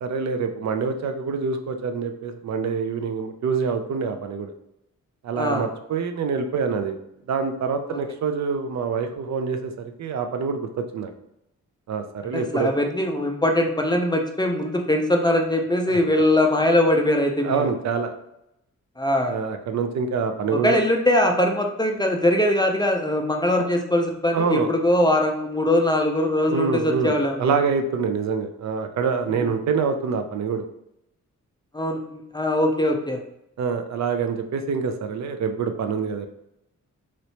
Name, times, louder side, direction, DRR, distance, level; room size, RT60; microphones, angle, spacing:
voice 1, 0.0-4.5 5.2-6.9 7.3-9.7 10.0-11.1 11.9-12.7 15.9-16.0 17.4-18.1 19.3-20.8 23.5-23.6 24.3-24.7 26.5-30.6 33.6-36.3, right 5 dB, 65° right, 7 dB, 0.4 m, -26 dB
voice 2, 5.4-5.7 7.9-8.0 12.3-17.7 19.0-19.3 20.6-27.5 29.3-29.5 31.7-33.2, left 1 dB, 15° left, 2 dB, 0.4 m, -21 dB
3.1 x 3.0 x 2.8 m, 0.82 s
cardioid pair, 105°, 31 cm